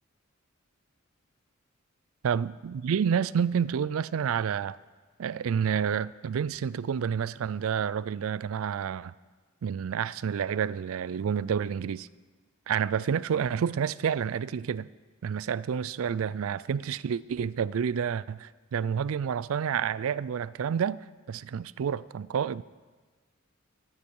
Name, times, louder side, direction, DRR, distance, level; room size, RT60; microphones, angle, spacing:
voice 1, 2.2-4.8 5.2-9.1 9.6-12.1 12.7-14.9 15.2-21.0 21.3-22.6, right 7 dB, 75° right, 0.4 m, -29 dB
13.5 x 13.5 x 4.6 m
head